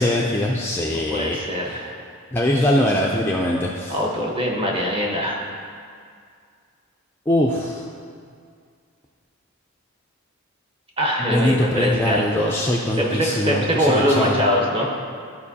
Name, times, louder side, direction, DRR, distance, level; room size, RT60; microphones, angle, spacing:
voice 1, 0.0-1.8 2.3-4.0 7.3-7.8 11.2-14.4, left 1 dB, 10° left, -2 dB, 0.3 m, -22 dB
voice 2, 0.9-2.0 3.9-5.4 11.0-12.7 13.0-14.9, equal, 25° right, -2 dB, 1.0 m, -23 dB
12.5 x 4.5 x 2.8 m, 2.2 s
head